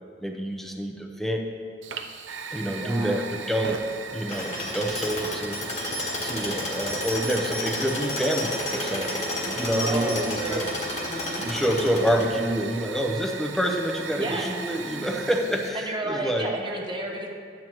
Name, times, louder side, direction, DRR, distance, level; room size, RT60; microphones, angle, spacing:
voice 1, 0.2-1.4 2.5-3.9 4.1-5.6 5.9-10.7 11.4-16.5, equal, ahead, 1 dB, 0.7 m, -27 dB
Fire, 1.8-15.7, right 5 dB, 90° right, 0.6 m, -38 dB
voice 2, 2.8-3.2 9.8-10.7 11.1-11.5 14.2-14.6 15.7-17.3, right 1 dB, 25° right, 0 dB, 1.0 m, -31 dB
Tools, 4.3-12.6, left 1 dB, 40° left, 1.5 m, -31 dB
12.5 x 8.9 x 3.0 m, 2.2 s
head